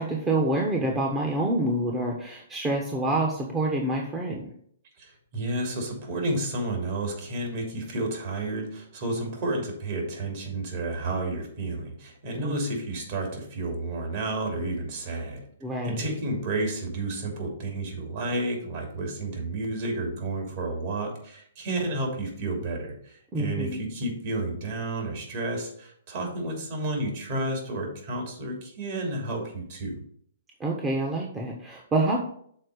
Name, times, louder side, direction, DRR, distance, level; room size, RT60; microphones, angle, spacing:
voice 1, 0.0-4.5 12.4-12.5 15.6-16.0 23.3-23.8 30.6-32.2, right 2 dB, 15° right, -1 dB, 1.1 m, -27 dB
voice 2, 5.0-15.4 15.8-30.0, right 2 dB, 50° right, 1 dB, 3.0 m, -31 dB
6.6 x 4.3 x 6.4 m, 0.64 s
hypercardioid pair, 130°, 0 cm